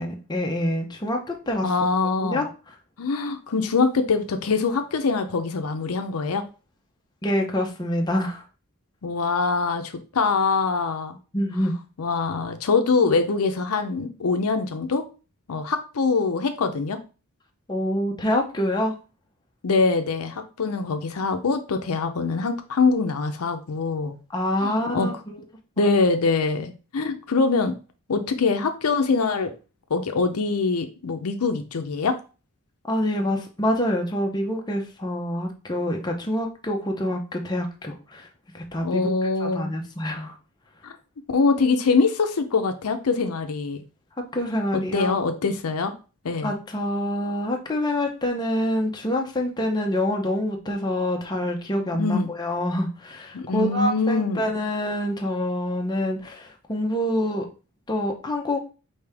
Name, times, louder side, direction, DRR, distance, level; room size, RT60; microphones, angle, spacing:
voice 1, 0.0-1.9 2.2-2.5 7.2-8.4 11.3-11.7 17.7-18.9 24.3-25.4 25.8-25.9 32.9-38.3 38.5-39.1 39.4-40.4 44.3-45.1 46.4-57.5 57.9-58.6, left 1 dB, 20° left, 2 dB, 0.7 m, -26 dB
voice 2, 1.6-2.4 3.0-6.4 9.0-11.2 12.0-15.0 15.5-17.0 19.6-24.2 24.6-25.1 25.8-27.7 28.1-29.5 29.9-32.2 38.8-39.7 40.8-40.9 41.3-43.8 44.7-45.9 46.2-46.5 52.0-52.3 53.3-54.4, left 4 dB, 80° left, 8 dB, 0.6 m, -23 dB
5.1 x 2.7 x 3.4 m, 0.33 s
head